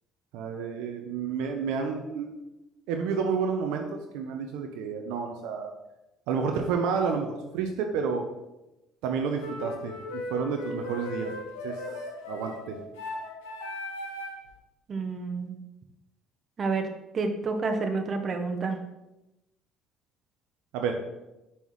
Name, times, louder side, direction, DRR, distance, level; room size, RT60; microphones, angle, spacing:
voice 1, 0.3-2.3 2.9-5.7 6.3-8.3 9.0-11.3 11.6-11.8 12.2-12.8 20.7-21.0, right 5 dB, 75° right, 3 dB, 0.6 m, -30 dB
sound 1, 9.4-14.5, left 2 dB, 90° left, 0.9 m, -37 dB
voice 2, 14.9-15.6 16.6-16.9 17.1-18.8, right 4 dB, 45° right, 5 dB, 0.8 m, -29 dB
5.5 x 5.5 x 3.1 m, 0.95 s
hypercardioid pair, 70°, 0 cm